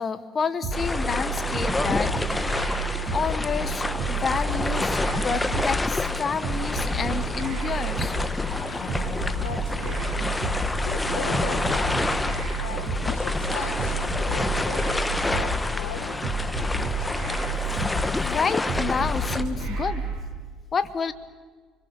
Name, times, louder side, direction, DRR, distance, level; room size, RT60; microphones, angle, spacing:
voice 1, 0.0-2.5 3.1-8.1 18.1-20.0 20.7-21.1, left 5 dB, 35° left, 13 dB, 1.2 m, -29 dB
sound 1, 0.6-20.2, right 2 dB, 55° right, 6.9 m, -30 dB
sound 2, 0.7-19.4, left 2 dB, 15° left, 1.6 m, -29 dB
sound 3, 6.8-19.7, left 7 dB, 55° left, 2.4 m, -42 dB
voice 2, 9.4-10.3 10.8-12.0 12.6-14.9 15.3-16.2, left 8 dB, 75° left, 4 dB, 1.9 m, -38 dB
29.5 x 23.0 x 7.1 m, 1.5 s
hypercardioid pair, 60°, 0 cm